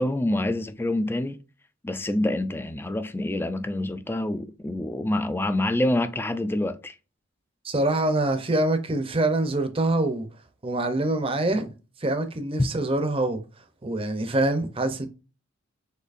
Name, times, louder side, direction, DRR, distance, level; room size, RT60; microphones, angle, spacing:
voice 1, 0.0-1.4 1.8-7.0, left 1 dB, 10° left, 0.3 m, -26 dB
voice 2, 7.6-10.3 10.6-11.7 12.0-13.4 13.8-15.1, right 2 dB, 25° right, 0.6 m, -25 dB
6.5 x 2.7 x 2.5 m
head